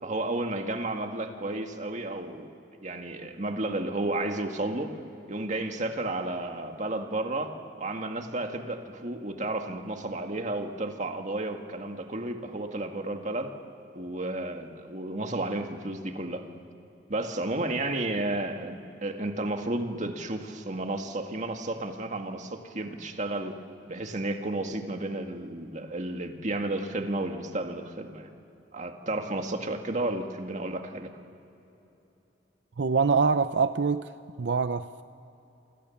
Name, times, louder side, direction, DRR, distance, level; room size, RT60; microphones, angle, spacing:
voice 1, 0.0-2.5 2.8-4.9 5.3-13.5 13.9-16.4 17.1-23.6 23.9-28.3 28.7-31.1, right 2 dB, 45° right, 4 dB, 2.0 m, -32 dB
voice 2, 32.8-34.1 34.4-35.0, right 5 dB, 80° right, 12 dB, 0.6 m, -25 dB
28.0 x 25.5 x 7.2 m, 2.9 s
head